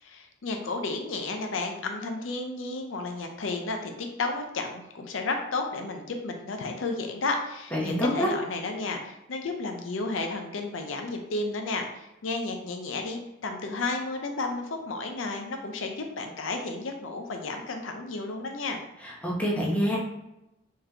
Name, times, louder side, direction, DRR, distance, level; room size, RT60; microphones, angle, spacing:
voice 1, 0.0-18.8, left 3 dB, 80° left, 4 dB, 0.5 m, -32 dB
voice 2, 7.7-8.3 19.2-20.0, equal, 5° left, -4 dB, 0.8 m, -26 dB
3.9 x 3.1 x 2.7 m, 0.91 s
head